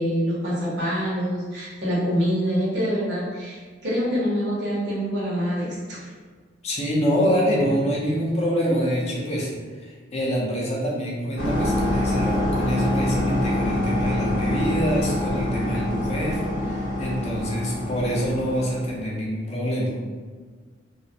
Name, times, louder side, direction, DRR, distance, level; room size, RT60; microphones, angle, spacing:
voice 1, 0.0-6.1, equal, 65° right, -7 dB, 0.8 m, -25 dB
voice 2, 6.6-9.5 9.8-20.0, equal, 35° left, -4 dB, 0.5 m, -25 dB
sound 1, 11.4-19.0, left 1 dB, 80° left, 0.6 m, -25 dB
2.3 x 2.0 x 2.6 m, 1.5 s
head